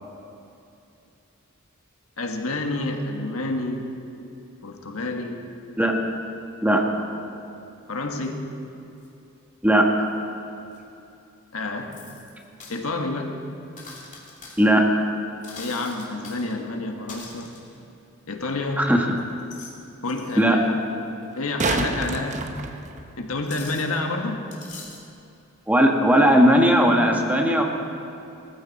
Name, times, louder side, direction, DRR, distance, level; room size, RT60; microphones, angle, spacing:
voice 1, 2.2-3.9 4.6-5.4 7.9-8.4 11.5-11.9 12.7-13.4 15.6-17.5 18.3-18.9 20.0-20.8 21.3-22.5 23.2-24.5, left 2 dB, 80° left, 3 dB, 1.5 m, -29 dB
sound 1, 8.2-8.3 9.0-9.1 10.7-10.8 11.9-12.8 13.8-14.6 15.4-16.5 17.1-17.8 19.2-19.8 20.0-20.4 22.1-22.2 23.5-24.0 24.5-25.1, left 4 dB, 35° left, 2.6 m, -43 dB
voice 2, 9.6-10.1 14.6-15.0 18.8-19.1 20.4-20.6 25.7-27.6, equal, 5° right, 1 dB, 1.3 m, -18 dB
sound 2, 18.4-18.5 21.2-23.4 26.2-26.3, right 3 dB, 35° right, 0.9 m, -28 dB
19.0 x 14.5 x 4.1 m, 2.7 s
head